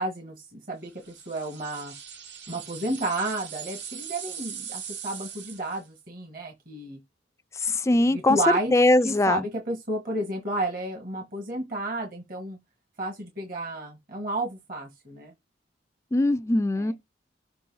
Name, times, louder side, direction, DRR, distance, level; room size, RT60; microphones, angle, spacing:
voice 1, 0.0-1.9 2.5-7.0 8.1-8.8 9.0-12.6 13.0-15.3 16.8-16.9, right 2 dB, 50° right, 1.5 m, -31 dB
sound 1, 1.0-5.9, right 8 dB, 70° right, 1.4 m, -40 dB
voice 2, 7.6-8.4 8.7-9.4 16.1-16.9, left 2 dB, 15° left, 0.3 m, -21 dB
6.8 x 2.6 x 5.4 m
head